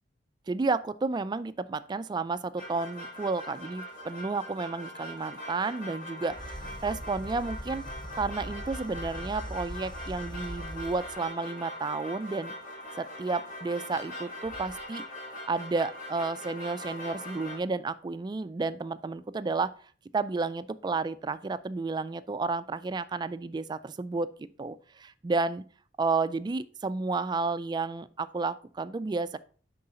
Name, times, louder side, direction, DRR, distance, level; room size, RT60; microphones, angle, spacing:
voice 1, 0.5-7.8 8.1-12.5 13.0-15.0 15.5-19.7 20.1-24.3 24.6-25.6 26.0-29.4, right 3 dB, 25° right, 14 dB, 0.3 m, -31 dB
sound 1, 2.6-17.6, left 1 dB, 45° left, 1.5 m, -42 dB
sound 2, 6.3-11.3 14.4-14.8, equal, 25° left, 0.7 m, -41 dB
9.6 x 3.8 x 3.8 m, 0.43 s
head